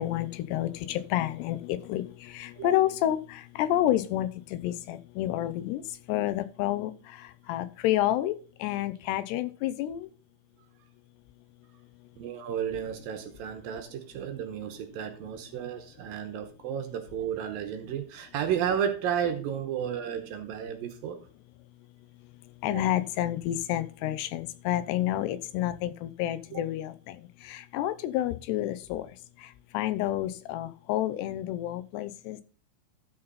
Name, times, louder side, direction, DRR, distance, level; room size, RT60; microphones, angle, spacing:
voice 1, 0.0-5.8 6.1-6.9 7.5-10.1 22.6-27.2 27.4-29.1 29.7-32.4, left 13 dB, 85° left, 12 dB, 2.9 m, -29 dB
voice 2, 12.2-21.2 22.6-22.9 26.5-26.6, right 8 dB, 70° right, 7 dB, 2.5 m, -33 dB
13.0 x 5.7 x 4.1 m, 0.38 s
omnidirectional pair, 4.7 m